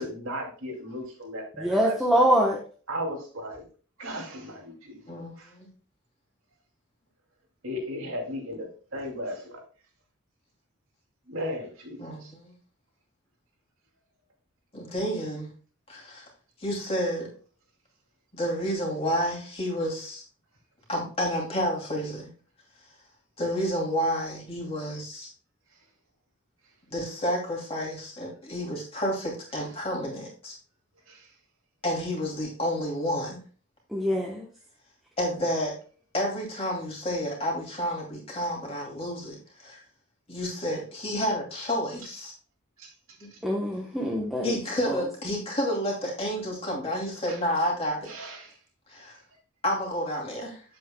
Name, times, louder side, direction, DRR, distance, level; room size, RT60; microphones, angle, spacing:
voice 1, 0.0-2.3 2.9-3.7 4.0-5.5 7.6-8.7 8.9-9.6 11.3-12.3 29.6-29.7 31.1-31.3 42.8-42.9 43.3-43.4 47.3-47.4 48.1-48.6, equal, 75° right, 0 dB, 2.5 m, -36 dB
voice 2, 1.6-2.6 33.9-34.4 43.4-44.5, equal, ahead, -3 dB, 0.9 m, -24 dB
voice 3, 5.1-5.7 12.0-12.5 14.7-15.5 15.9-16.3 16.6-17.3 18.3-20.2 20.9-22.3 23.4-25.3 26.9-30.6 31.8-33.4 35.2-35.7 36.1-39.8 40.3-42.3 43.2-43.3 44.4-48.1 48.9-49.1 49.6-50.6, equal, 25° left, -2 dB, 2.7 m, -30 dB
8.6 x 7.7 x 2.2 m, 0.38 s
head